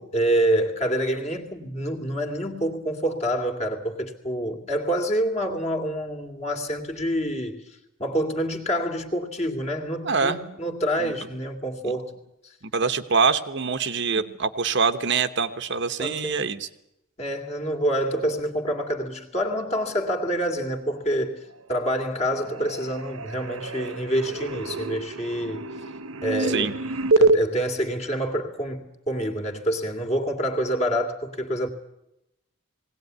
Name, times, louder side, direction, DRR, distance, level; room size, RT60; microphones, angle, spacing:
voice 1, 0.0-12.1 12.4-12.5 14.1-14.2 16.0-16.4 17.2-25.7 26.2-26.8 27.2-31.7, equal, 30° left, 2.4 m, -27 dB
voice 2, 10.0-10.6 11.0-11.1 12.7-16.7 26.5-26.7, right 5 dB, 55° right, 1.0 m, -24 dB
sound 1, 21.4-22.0 22.2-27.4, right 2 dB, 80° right, 0.8 m, -26 dB
20.0 x 17.5 x 9.5 m
head